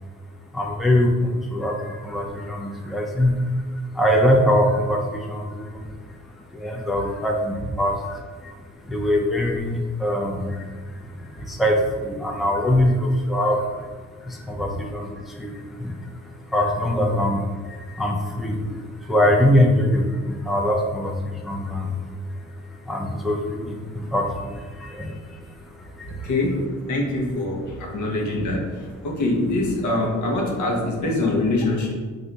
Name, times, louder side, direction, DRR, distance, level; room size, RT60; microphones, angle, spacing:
voice 1, 0.5-26.3, left 1 dB, ahead, 0 dB, 0.4 m, -24 dB
voice 2, 26.0-31.9, left 2 dB, 70° left, -1 dB, 1.0 m, -24 dB
3.2 x 2.6 x 3.9 m, 1.4 s
cardioid pair, 90°, 30 cm